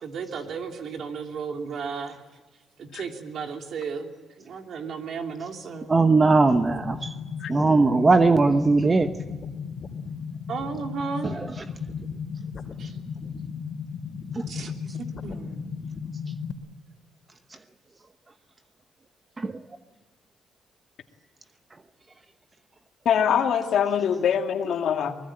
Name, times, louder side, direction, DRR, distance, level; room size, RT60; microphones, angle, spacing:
voice 1, 0.0-2.2 2.8-5.9 10.5-11.4 12.8-13.0 14.5-15.7, right 5 dB, 65° right, 3.0 m, -34 dB
voice 2, 5.9-6.9 7.5-9.2 11.2-11.5 14.3-14.4 19.4-19.6, right 3 dB, 25° right, 1.0 m, -19 dB
sound 1, 6.5-16.5, left 6 dB, 45° left, 3.1 m, -35 dB
voice 3, 23.1-25.1, left 8 dB, 70° left, 2.2 m, -23 dB
24.5 x 20.0 x 8.9 m
cardioid pair, 90°, 0 cm